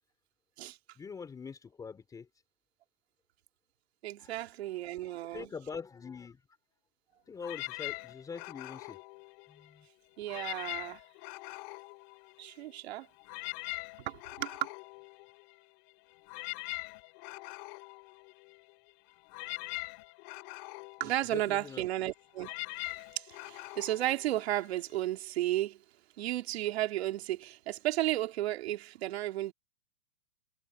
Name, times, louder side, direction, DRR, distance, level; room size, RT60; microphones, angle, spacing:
voice 1, 1.0-2.3 4.2-4.3 4.7-6.4 7.3-9.0 9.5-9.9 21.0-21.8, left 5 dB, 10° left, 3.5 m, -44 dB
voice 2, 4.0-5.5 10.2-11.0 12.4-13.1 14.0-14.7 21.0-22.5 23.1-25.8 26.2-29.5, right 14 dB, 55° right, 2.6 m, -33 dB
sound 1, 7.4-9.8 10.2-12.7 13.0-25.0, left 30 dB, 35° left, 5.4 m, -43 dB
supercardioid pair, 170°, 38 cm